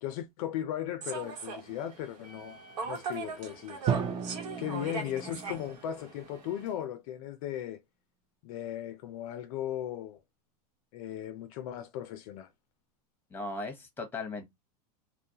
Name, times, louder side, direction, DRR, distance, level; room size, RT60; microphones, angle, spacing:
voice 1, 0.0-2.6 2.8-3.9 4.6-7.8 8.4-10.2 10.9-12.5, left 11 dB, 60° left, 0.4 m, -37 dB
Human voice / Subway metro underground, 1.0-6.7, right 4 dB, 75° right, 0.9 m, -41 dB
Drum, 3.9-5.8, right 7 dB, 25° right, 0.5 m, -33 dB
voice 2, 13.3-14.5, left 3 dB, 10° left, 0.8 m, -38 dB
2.2 x 2.0 x 2.7 m
hypercardioid pair, 110°, 20 cm